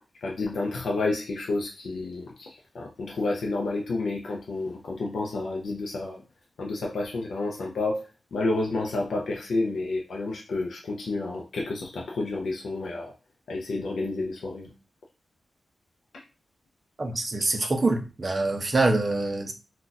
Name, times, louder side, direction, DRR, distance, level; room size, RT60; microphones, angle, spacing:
voice 1, 0.2-6.2 6.6-8.0 8.3-13.1 13.5-14.7 16.1-16.2 17.6-17.7, left 2 dB, 75° left, 0.4 m, -30 dB
voice 2, 17.0-19.5, right 2 dB, 30° right, 0.4 m, -25 dB
2.3 x 2.2 x 3.9 m
wide cardioid pair, 165°, 0 cm